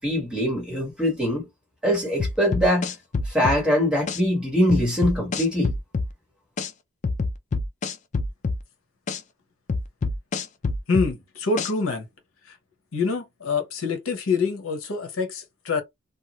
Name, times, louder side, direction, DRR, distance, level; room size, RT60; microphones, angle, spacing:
voice 1, 0.0-1.5 1.8-2.9 3.3-5.7, equal, 5° right, 1.4 m, -22 dB
sound 1, 2.2-3.6 4.1-4.2 4.7-6.1 6.6-6.7 7.0-8.6 9.1-9.2 9.7-11.1 11.6-11.7, left 3 dB, 35° left, 0.4 m, -26 dB
voice 2, 10.9-12.1 12.4-12.6 12.9-15.8, left 4 dB, 70° left, 0.9 m, -26 dB
2.7 x 2.3 x 2.9 m
head